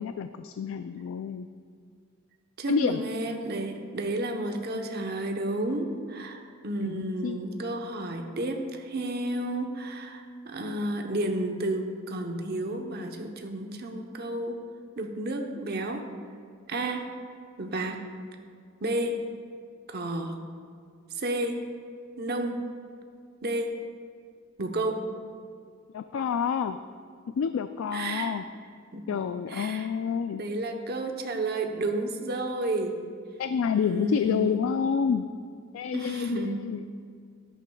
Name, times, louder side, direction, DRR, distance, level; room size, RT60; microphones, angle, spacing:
voice 1, 0.0-1.5 2.7-3.0 6.8-7.4 25.9-26.8 27.4-28.4 29.1-30.4 33.4-35.2 35.7-36.8, left 6 dB, 80° left, 9 dB, 0.3 m, -28 dB
voice 2, 2.6-14.6 15.0-16.1 16.7-17.1 17.6-18.1 18.8-19.2 19.9-20.4 21.1-21.6 22.2-22.6 23.4-23.8 24.6-25.1 27.9-28.3 28.9-29.2 29.5-29.9 30.4-33.0 33.7-34.7 35.9-36.6, right 1 dB, 50° right, 4 dB, 0.9 m, -31 dB
13.0 x 10.0 x 2.3 m, 2.2 s
head